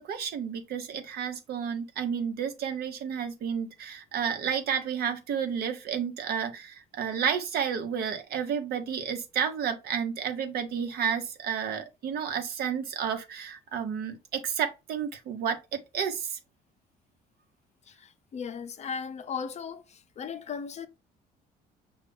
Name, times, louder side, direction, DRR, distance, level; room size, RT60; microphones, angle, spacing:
voice 1, 0.0-16.4, right 7 dB, 70° right, 1.0 m, -31 dB
voice 2, 18.3-19.8 20.2-20.9, left 6 dB, 40° left, 0.6 m, -36 dB
5.6 x 2.4 x 3.5 m
cardioid pair, 110°, 17 cm